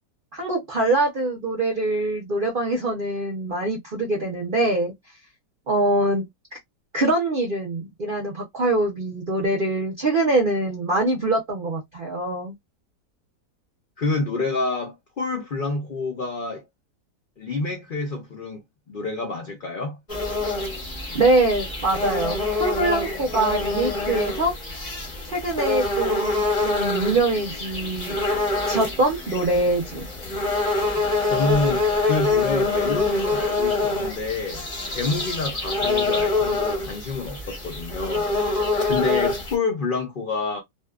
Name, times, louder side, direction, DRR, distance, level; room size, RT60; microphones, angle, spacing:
voice 1, 0.3-4.9 5.7-6.3 6.9-12.5 21.1-24.5 25.2-28.2 28.7-30.1, right 2 dB, 55° right, 0.6 m, -23 dB
voice 2, 14.0-16.6 17.4-18.6 18.9-20.0 31.3-38.3 38.9-40.6, left 3 dB, 90° left, 0.4 m, -28 dB
sound 1, 20.1-39.5, left 3 dB, 30° left, 0.6 m, -25 dB
2.6 x 2.2 x 2.3 m
omnidirectional pair, 1.8 m